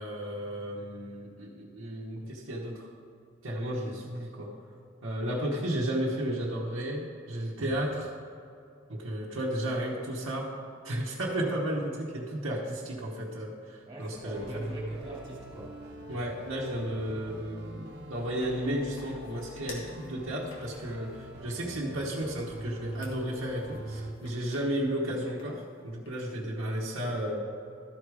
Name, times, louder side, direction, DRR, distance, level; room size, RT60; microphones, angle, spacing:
voice 1, 0.0-2.9 3.4-4.6 5.0-8.1 8.9-10.5 10.8-14.5 16.1-27.5, right 1 dB, 85° right, -5 dB, 1.1 m, -33 dB
voice 2, 11.2-11.5 13.9-15.9, right 1 dB, 25° right, -5 dB, 2.4 m, -42 dB
sound 1, 14.1-24.1, right 1 dB, 55° right, 1.2 m, -43 dB
sound 2, 17.9-26.6, left 2 dB, 70° left, 1.8 m, -55 dB
13.0 x 4.7 x 4.9 m, 2.5 s
head